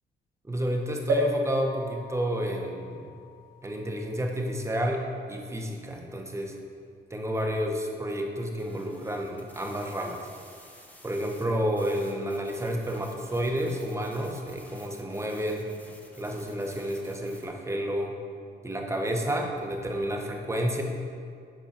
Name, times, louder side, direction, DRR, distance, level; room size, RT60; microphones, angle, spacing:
voice 1, 0.4-3.1 3.6-6.6 7.1-10.2 11.0-15.6 16.2-18.1 18.6-20.8, equal, 15° right, 1 dB, 1.0 m, -30 dB
sound 1, 1.1-4.8 5.4-5.5 5.7-5.8, equal, 90° right, 1.8 m, -33 dB
sound 2, 8.6-17.5, equal, 10° left, 1.3 m, -53 dB
9.0 x 3.9 x 5.7 m, 2.3 s
cardioid pair, 90°, 20 cm